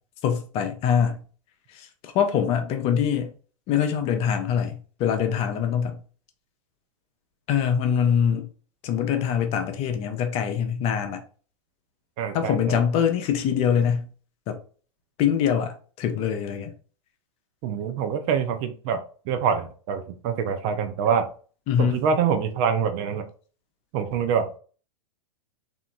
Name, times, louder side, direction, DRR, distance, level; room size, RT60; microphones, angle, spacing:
voice 1, 0.2-1.2 1.7-3.3 3.7-6.0 7.5-8.5 8.8-11.2 12.3-14.1 14.5-14.6 15.2-16.7 21.7-22.0, left 8 dB, 35° left, 0.5 m, -24 dB
voice 2, 12.2-12.8 17.6-19.0 19.3-21.3 21.8-23.2 23.9-24.6, right 7 dB, 40° right, 0.5 m, -25 dB
2.8 x 2.4 x 2.2 m
hypercardioid pair, 105°, 18 cm